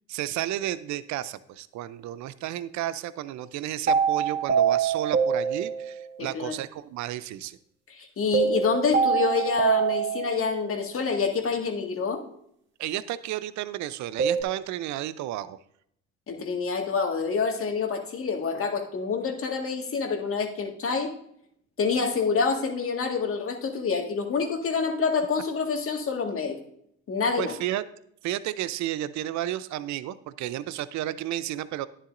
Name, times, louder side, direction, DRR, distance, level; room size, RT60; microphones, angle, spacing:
voice 1, 0.1-7.6 12.8-15.6 27.4-27.8 28.2-31.9, right 13 dB, 60° right, 16 dB, 0.6 m, -32 dB
sound 1, 3.9-6.1 8.3-10.6 14.2-14.4, right 7 dB, 35° right, 1.6 m, -24 dB
voice 2, 6.2-6.5 7.9-12.2 16.3-21.1 21.8-26.6 27.1-27.5, left 5 dB, 45° left, 3 dB, 1.8 m, -27 dB
11.0 x 10.0 x 2.6 m, 0.70 s
supercardioid pair, 70°, 32 cm